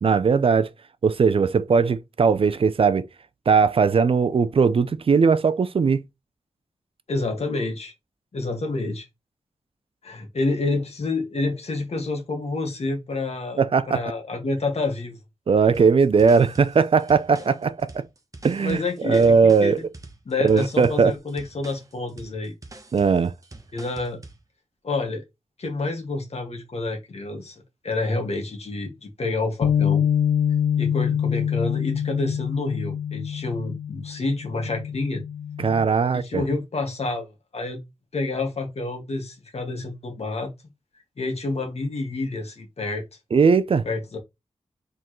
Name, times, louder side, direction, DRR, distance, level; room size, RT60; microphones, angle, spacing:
voice 1, 0.0-0.7 1.0-3.1 3.5-6.0 13.6-14.0 15.5-18.0 18.4-19.8 20.4-21.1 22.9-23.3 35.6-36.4 43.3-43.8, right 5 dB, 50° right, 0.4 m, -19 dB
voice 2, 7.1-7.9 8.3-9.1 10.0-15.2 18.6-19.7 20.2-22.5 23.7-24.2 24.8-25.2 25.6-30.1 30.8-35.2 36.1-37.3 37.5-37.8 38.1-40.5 41.2-43.0 43.8-44.2, left 3 dB, 65° left, 1.7 m, -28 dB
sound 1, 15.7-24.4, right 2 dB, 30° right, 0.9 m, -45 dB
Bass guitar, 29.6-35.9, left 8 dB, 85° left, 0.5 m, -25 dB
4.5 x 3.7 x 3.0 m
wide cardioid pair, 105°, 12 cm